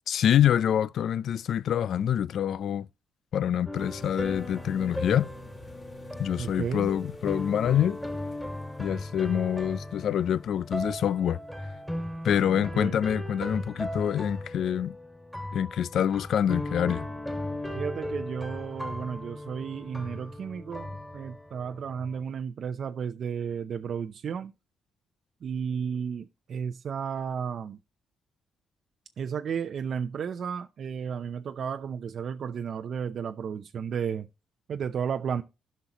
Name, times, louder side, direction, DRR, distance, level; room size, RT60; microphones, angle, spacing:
voice 1, 0.1-2.9 3.3-5.3 6.2-8.0 8.8-11.4 12.2-15.0 15.5-17.1, left 9 dB, 70° left, 0.4 m, -26 dB
sound 1, 3.7-12.8 13.3-13.5 13.8-13.9, left 2 dB, 30° left, 2.5 m, -53 dB
sound 2, 3.7-22.2, left 1 dB, 5° left, 2.0 m, -37 dB
voice 2, 6.4-6.9 12.5-13.0 17.7-24.5 25.4-27.8 29.2-34.3 34.7-35.4, right 7 dB, 60° right, 0.6 m, -33 dB
13.5 x 5.6 x 3.0 m
cardioid pair, 90°, 0 cm